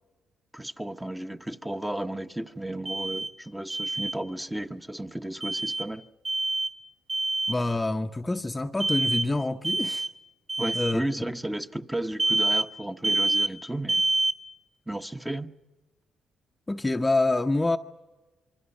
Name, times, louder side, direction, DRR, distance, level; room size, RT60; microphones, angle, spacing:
voice 1, 0.5-6.0 10.6-14.0 14.9-15.5, right 1 dB, 10° right, 1.0 m, -33 dB
Alarm, 2.8-3.3 3.7-4.1 5.4-5.9 6.2-6.7 7.1-7.6 8.8-9.3 9.6-10.1 10.5-10.9 12.2-12.7 13.0-13.5 13.9-14.4, right 2 dB, 30° right, 2.5 m, -26 dB
voice 2, 7.5-10.1 10.7-11.0 16.7-17.8, left 2 dB, 15° left, 0.8 m, -26 dB
26.5 x 24.5 x 5.5 m
cardioid pair, 90°, 0 cm